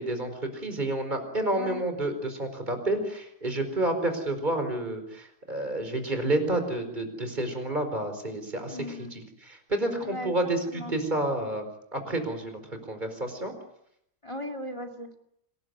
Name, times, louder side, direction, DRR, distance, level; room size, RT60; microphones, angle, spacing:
voice 1, 0.0-8.8 9.1-11.6 11.9-12.6 12.9-13.5, right 1 dB, 30° right, 7 dB, 4.8 m, -29 dB
voice 2, 8.7-9.1 10.0-10.3 10.7-10.9 14.2-15.1, left 1 dB, 20° left, 4 dB, 2.6 m, -37 dB
27.0 x 19.5 x 9.6 m, 0.77 s
omnidirectional pair, 1.5 m